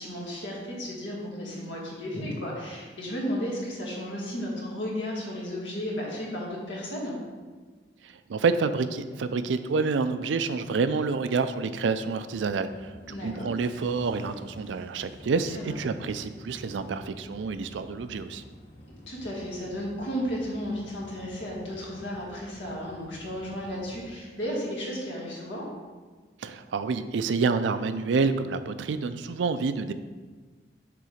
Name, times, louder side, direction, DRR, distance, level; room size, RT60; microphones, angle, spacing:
voice 1, 0.0-7.2 13.1-13.5 15.5-15.8 18.9-25.6, equal, 90° left, -4 dB, 2.0 m, -34 dB
voice 2, 8.0-12.9 13.2-18.4 26.4-29.9, right 4 dB, 85° right, 11 dB, 0.4 m, -28 dB
sound 1, 12.3-24.1, equal, 50° left, 2.1 m, -50 dB
6.9 x 3.7 x 5.0 m, 1.4 s
head